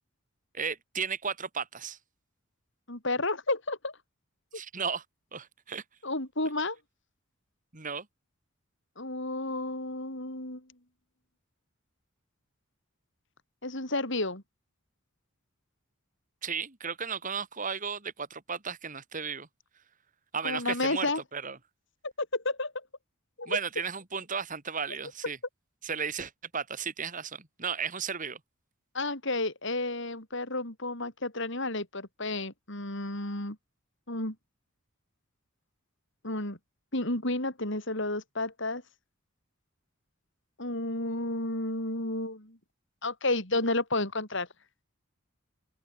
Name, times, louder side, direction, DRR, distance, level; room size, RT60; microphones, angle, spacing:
voice 1, 0.5-2.0 4.5-5.0 5.3-5.8 7.7-8.1 16.4-19.5 20.3-21.6 23.5-25.4 25.8-28.4, right 6 dB, 40° right, 2.7 m, -34 dB
voice 2, 2.9-3.9 6.0-6.8 9.0-10.6 13.6-14.4 20.4-21.2 22.2-22.7 23.4-23.6 28.9-33.6 34.1-34.4 36.2-36.6 36.9-38.8 40.6-42.6 43.0-44.5, left 2 dB, 60° left, 7.2 m, -31 dB
open air
head